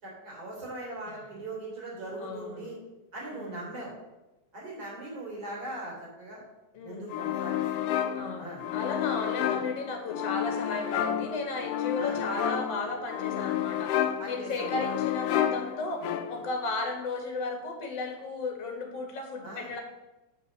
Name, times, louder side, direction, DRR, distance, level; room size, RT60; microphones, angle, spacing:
voice 1, 0.0-2.7 3.1-3.9 4.5-6.4 6.8-7.6 8.4-8.6 9.4-9.6 12.0-12.2 14.2-15.0 19.4-19.7, right 1 dB, 30° right, -4 dB, 4.0 m, -40 dB
voice 2, 2.2-2.7 3.3-3.7 6.7-7.2 8.1-13.9 14.3-16.0 16.3-19.8, left 3 dB, 40° left, 3 dB, 2.1 m, -34 dB
sound 1, 7.1-16.6, left 10 dB, 90° left, 1.3 m, -31 dB
7.9 x 5.4 x 6.8 m, 1.0 s
omnidirectional pair, 3.4 m